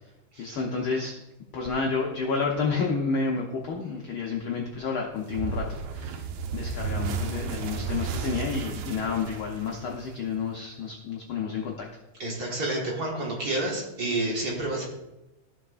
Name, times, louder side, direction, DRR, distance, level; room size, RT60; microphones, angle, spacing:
voice 1, 0.4-1.1 1.5-11.9, left 5 dB, 85° left, -1 dB, 1.1 m, -30 dB
sound 1, 5.3-10.4, right 4 dB, 80° right, 1.7 m, -33 dB
voice 2, 12.2-14.9, right 2 dB, 40° right, -2 dB, 1.5 m, -29 dB
15.0 x 5.8 x 2.5 m, 0.96 s
omnidirectional pair, 3.5 m